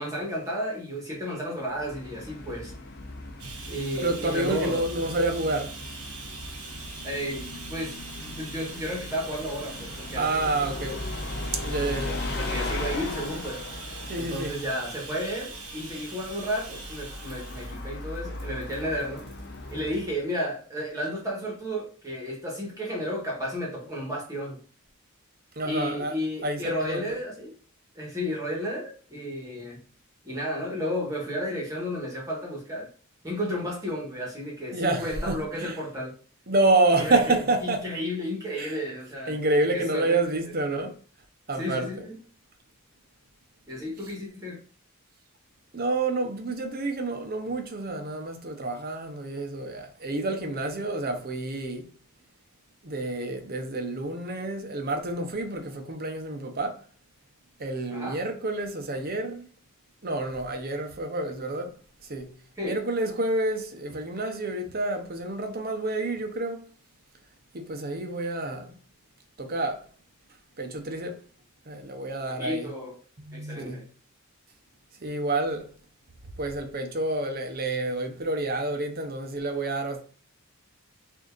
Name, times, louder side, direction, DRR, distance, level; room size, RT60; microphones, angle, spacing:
voice 1, 0.0-2.7 3.7-4.8 7.0-10.5 12.4-13.6 14.2-19.2 19.7-24.6 25.6-27.5 27.9-29.8 30.2-32.9 33.2-36.2 37.0-39.4 39.7-40.4 41.6-42.1 43.7-44.6 57.9-58.2 62.6-62.8 72.3-72.9 73.3-73.8, equal, 15° right, 1.6 m, -33 dB
Bus, 1.6-20.2, left 2 dB, 45° left, 0.8 m, -38 dB
Bathtub (filling or washing), 3.4-20.0 21.0-21.1 21.5-21.6, right 4 dB, 75° right, 1.1 m, -43 dB
voice 2, 4.0-5.8 10.2-11.1 11.6-12.3 14.1-14.5 25.6-26.1 26.4-27.2 34.7-35.8 36.5-37.9 38.6-38.7 39.3-40.9 41.5-42.1 45.7-51.9 52.8-56.8 57.6-59.5 60.0-61.7 62.0-62.3 62.6-66.6 67.5-68.7 69.4-69.8 70.6-71.2 71.7-72.7 73.3-73.9 75.0-75.7 76.4-80.0, right 2 dB, 40° right, 0.9 m, -28 dB
6.3 x 2.8 x 2.5 m
head